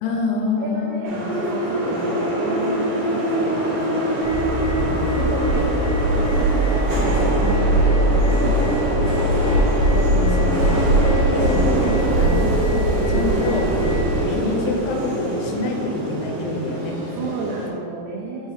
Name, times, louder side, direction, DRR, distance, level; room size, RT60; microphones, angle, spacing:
voice 1, 0.0-1.3 1.9-2.0 4.8-5.3 9.9-10.9 11.3-11.7 12.2-12.6 13.1-13.7 14.1-17.3, left 3 dB, 90° left, 2 dB, 3.0 m, -27 dB
voice 2, 0.6-4.2 5.1-5.6 6.2-7.1 7.4-8.8 17.2-18.5, right 3 dB, 85° right, -2 dB, 2.2 m, -31 dB
sound 1, 1.0-17.7, right 1 dB, 60° right, 1.7 m, -24 dB
sound 2, 4.2-14.2, right 1 dB, 65° left, 2.3 m, -21 dB
6.3 x 5.4 x 3.5 m, 2.7 s
omnidirectional pair, 5.3 m